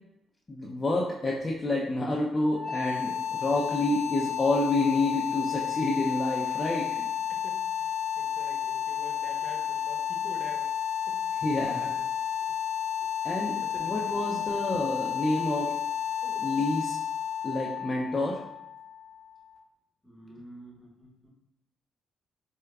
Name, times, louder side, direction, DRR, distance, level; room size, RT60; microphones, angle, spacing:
voice 1, 0.5-6.9 11.3-11.9 13.2-15.8 16.2-17.0 17.4-18.4, left 2 dB, 30° left, -3 dB, 0.5 m, -29 dB
sound 1, 2.5-19.4, left 9 dB, 45° right, 1.5 m, -32 dB
voice 2, 8.2-9.6 9.9-10.6 11.8-11.9 13.7-14.2 20.0-21.3, left 1 dB, 10° left, -2 dB, 1.0 m, -47 dB
4.5 x 2.1 x 2.3 m, 0.84 s
supercardioid pair, 65°, 0 cm